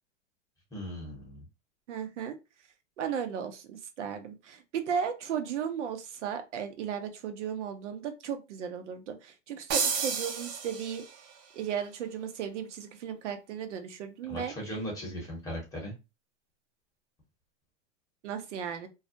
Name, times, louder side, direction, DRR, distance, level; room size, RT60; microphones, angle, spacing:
voice 1, 0.7-1.4 14.3-15.9, equal, 10° left, -3 dB, 0.8 m, -38 dB
voice 2, 1.9-2.4 3.0-11.0 11.5-14.5 18.2-18.9, right 8 dB, 75° right, 7 dB, 0.7 m, -35 dB
sound 1, 9.7-11.3, right 6 dB, 40° right, 0.5 m, -31 dB
2.3 x 2.0 x 2.6 m, 0.27 s
hypercardioid pair, 140°, 36 cm